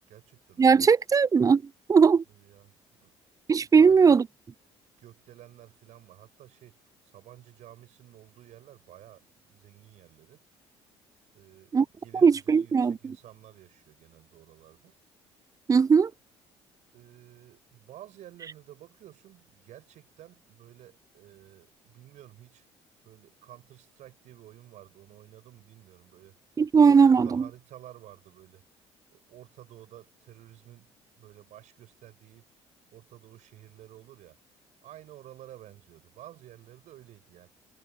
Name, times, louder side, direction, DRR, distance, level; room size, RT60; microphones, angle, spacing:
voice 1, 0.0-0.9 2.3-2.7 3.0-3.1 3.6-4.2 5.0-10.4 11.3-15.0 16.9-22.7 23.0-26.4 26.9-28.6 29.1-30.9 31.2-32.5 32.9-34.4 34.8-37.5, right 13 dB, 60° right, 6.2 m, -52 dB
voice 2, 0.6-1.6 1.9-2.2 3.5-4.2 11.7-11.8 12.2-12.9 15.7-16.1 26.6-27.4, right 5 dB, 25° right, 0.5 m, -19 dB
figure-of-eight pair, 55°, 14 cm